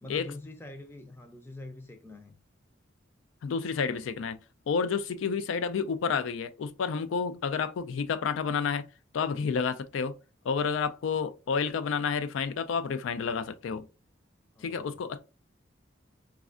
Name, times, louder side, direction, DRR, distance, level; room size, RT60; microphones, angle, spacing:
voice 1, 0.0-2.3 14.5-15.0, left 2 dB, 10° left, 0.4 m, -44 dB
voice 2, 3.4-4.4 4.7-8.9 9.1-10.1 10.4-13.9 14.6-15.2, left 6 dB, 85° left, 0.3 m, -30 dB
4.1 x 2.3 x 2.4 m
head